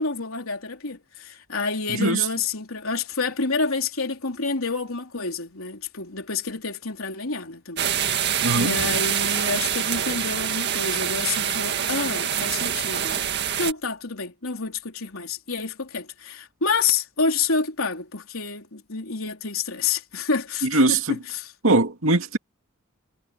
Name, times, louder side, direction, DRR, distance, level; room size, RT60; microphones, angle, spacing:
voice 1, 0.0-8.3 8.5-13.2 13.6-21.5, left 4 dB, 85° left, 3.6 m, -28 dB
sound 1, 7.8-13.7, right 9 dB, 55° right, 1.9 m, -25 dB
voice 2, 8.4-8.8 20.7-21.2 21.6-22.4, right 2 dB, 75° right, 2.5 m, -21 dB
head